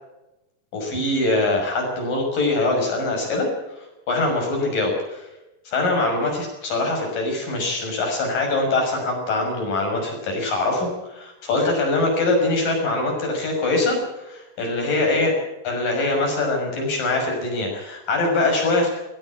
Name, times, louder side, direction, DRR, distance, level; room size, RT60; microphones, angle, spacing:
voice 1, 0.7-3.5 3.7-5.3 5.7-15.4 15.6-18.9, left 2 dB, 80° left, 1 dB, 7.9 m, -23 dB
19.0 x 16.5 x 8.5 m, 0.98 s
omnidirectional pair, 3.9 m